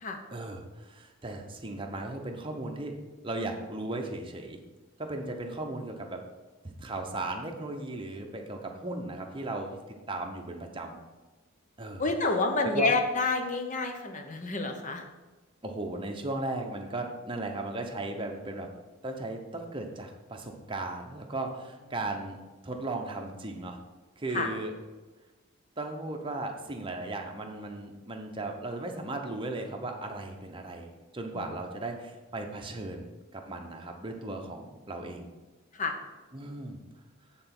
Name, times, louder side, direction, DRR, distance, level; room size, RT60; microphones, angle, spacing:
voice 1, 0.3-2.9 3.2-4.6 5.0-6.2 6.6-9.8 10.1-11.0 11.8-12.0 12.6-12.9 15.6-18.7 19.0-22.4 22.6-23.8 24.2-24.7 25.8-35.3 36.3-36.8, right 2 dB, 25° right, 3 dB, 0.8 m, -36 dB
voice 2, 12.0-15.0 24.3-24.5 31.3-31.5 35.7-35.9, left 3 dB, 35° left, 4 dB, 0.9 m, -28 dB
9.2 x 4.0 x 6.0 m, 1.2 s
head